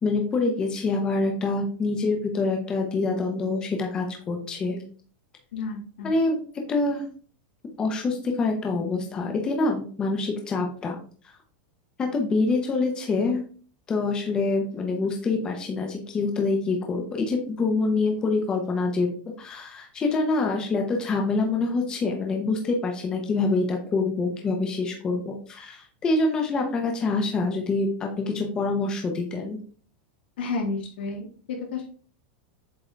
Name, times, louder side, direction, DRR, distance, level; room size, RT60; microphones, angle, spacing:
voice 1, 0.0-4.8 6.0-6.4 6.7-7.0 7.8-11.0 12.0-13.4 13.9-29.6, left 3 dB, 15° left, 2 dB, 0.9 m, -26 dB
voice 2, 5.5-6.1 30.4-31.9, left 3 dB, 75° left, 1 dB, 2.1 m, -31 dB
7.8 x 3.9 x 3.4 m, 0.42 s
supercardioid pair, 180°, 6 cm